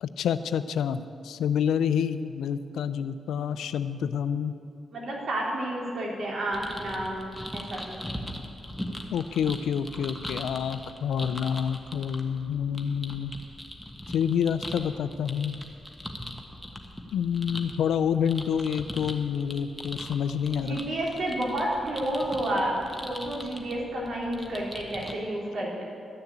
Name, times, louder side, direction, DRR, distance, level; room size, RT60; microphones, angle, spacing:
voice 1, 0.0-4.6 9.1-13.3 14.1-15.6 17.1-20.8, left 8 dB, 90° left, 13 dB, 0.4 m, -28 dB
voice 2, 4.9-7.2 7.5-8.0 20.6-22.8 23.0-25.8, right 1 dB, 65° right, -2 dB, 3.3 m, -30 dB
sound 1, 6.5-25.1, left 1 dB, 5° left, 1.4 m, -41 dB
12.5 x 6.7 x 8.5 m, 2.4 s
cardioid pair, 65°, 0 cm